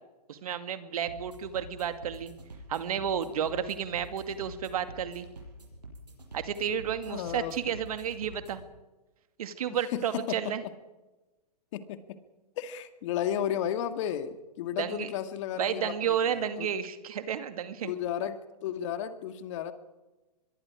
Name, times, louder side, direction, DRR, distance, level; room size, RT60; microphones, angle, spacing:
voice 1, 0.3-2.3 2.7-5.3 6.3-8.6 9.4-10.6 14.8-15.1 15.6-17.9, right 8 dB, 60° right, 10 dB, 2.2 m, -32 dB
sound 1, 1.1-8.7, right 1 dB, 85° right, 7.6 m, -47 dB
voice 2, 7.1-7.8 9.7-10.5 11.7-12.2 12.6-16.7 17.8-19.7, left 10 dB, 50° left, 10 dB, 2.0 m, -34 dB
24.0 x 22.5 x 4.9 m, 1.1 s
hypercardioid pair, 115°, 21 cm